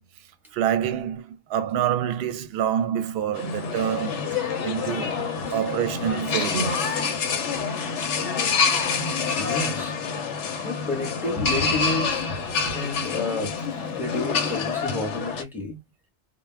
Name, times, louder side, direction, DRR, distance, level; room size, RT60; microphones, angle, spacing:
voice 1, 0.5-5.2 5.5-7.0, right 9 dB, 65° right, 0.7 m, -27 dB
sound 1, 3.3-15.4, left 5 dB, 85° left, 0.9 m, -27 dB
voice 2, 9.3-10.0 10.6-12.3 12.6-13.6 14.0-15.8, left 2 dB, ahead, 0.8 m, -30 dB
2.3 x 2.2 x 3.3 m
omnidirectional pair, 1.2 m